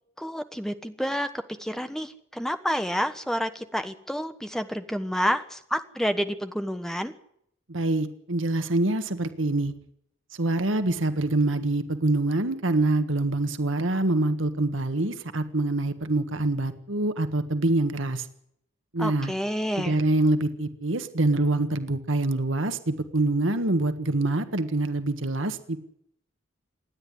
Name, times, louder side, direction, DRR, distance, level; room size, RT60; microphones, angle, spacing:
voice 1, 0.2-1.3 1.6-7.1 19.0-20.0, equal, ahead, 9 dB, 1.2 m, -29 dB
voice 2, 7.7-9.7 10.4-18.2 18.9-19.3 19.8-25.8, right 2 dB, 80° right, 10 dB, 1.6 m, -25 dB
27.0 x 10.5 x 9.9 m, 0.73 s
head